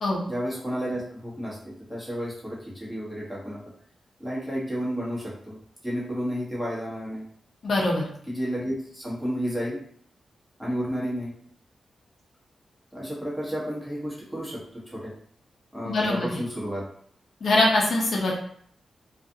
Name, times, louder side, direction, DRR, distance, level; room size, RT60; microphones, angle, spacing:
voice 1, 0.2-3.6 4.2-5.6 5.8-7.2 8.3-9.8 10.6-11.3 12.9-15.1 15.7-16.8, equal, ahead, -6 dB, 1.1 m, -31 dB
voice 2, 7.6-8.0 15.8-16.3 17.4-18.4, left 2 dB, 70° left, -2 dB, 0.6 m, -23 dB
2.4 x 2.4 x 2.6 m, 0.62 s
cardioid pair, 70°, 0 cm